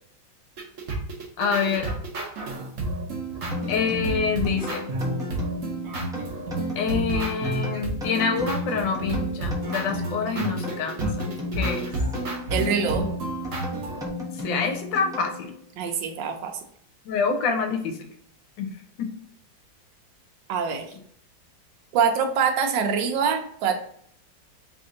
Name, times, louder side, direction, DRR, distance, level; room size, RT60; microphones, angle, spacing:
sound 1, 0.6-14.1, right 2 dB, 55° right, 1.0 m, -30 dB
voice 1, 1.4-1.9 3.7-4.9 6.8-11.9 14.3-15.5 17.0-18.0 18.6-18.7 19.0-19.1, left 5 dB, 80° left, 4 dB, 1.4 m, -26 dB
sound 2, 3.5-15.7, left 3 dB, 5° right, 0.4 m, -35 dB
voice 2, 12.5-13.1 15.8-16.6 20.5-20.9 21.9-23.8, right 6 dB, 75° right, 5 dB, 1.2 m, -24 dB
3.4 x 2.6 x 3.7 m, 0.66 s
omnidirectional pair, 2.0 m